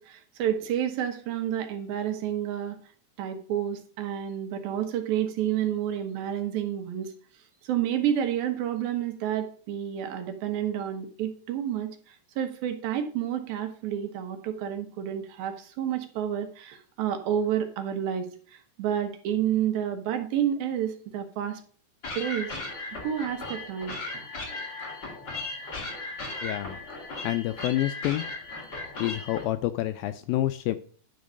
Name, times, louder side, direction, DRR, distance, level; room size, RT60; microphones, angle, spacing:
voice 1, 0.0-2.8 3.2-7.1 7.6-21.6 22.1-22.6 23.0-24.3, right 10 dB, 75° right, 6 dB, 2.7 m, -30 dB
sound 1, 22.0-29.4, left 2 dB, 35° left, 2.2 m, -37 dB
voice 2, 26.4-26.8 27.2-28.3 29.0-30.8, left 14 dB, 85° left, 10 dB, 2.1 m, -28 dB
10.5 x 3.9 x 6.3 m, 0.44 s
omnidirectional pair, 4.5 m